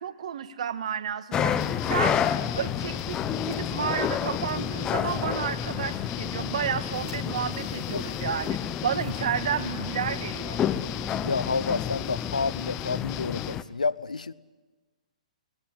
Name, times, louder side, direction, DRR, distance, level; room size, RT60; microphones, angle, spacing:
voice 1, 0.0-1.5 1.8-2.2 2.5-10.6, right 8 dB, 60° right, 11 dB, 1.6 m, -31 dB
sound 1, 0.9-1.0 1.5-2.0 3.0-3.2 3.5-3.6 4.5-4.6 5.3-5.4 6.9-8.7 9.0-9.2, right 3 dB, 15° right, 4.0 m, -51 dB
sound 2, 1.3-13.6, left 8 dB, 20° left, 0.9 m, -30 dB
sound 3, 1.6-13.6, left 18 dB, 40° left, 0.8 m, -38 dB
voice 2, 11.2-14.3, left 4 dB, 85° left, 18 dB, 0.8 m, -29 dB
21.5 x 19.5 x 9.8 m, 1.3 s
hypercardioid pair, 125°, 4 cm